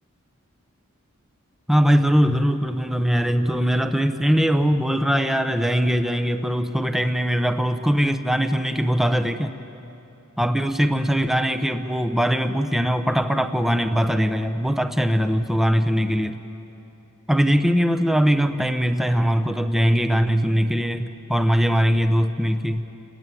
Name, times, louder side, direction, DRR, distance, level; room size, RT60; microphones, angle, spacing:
voice 1, 1.7-9.5 10.4-16.4 17.3-22.8, equal, ahead, 8 dB, 0.8 m, -21 dB
29.5 x 21.0 x 9.1 m, 2.8 s
head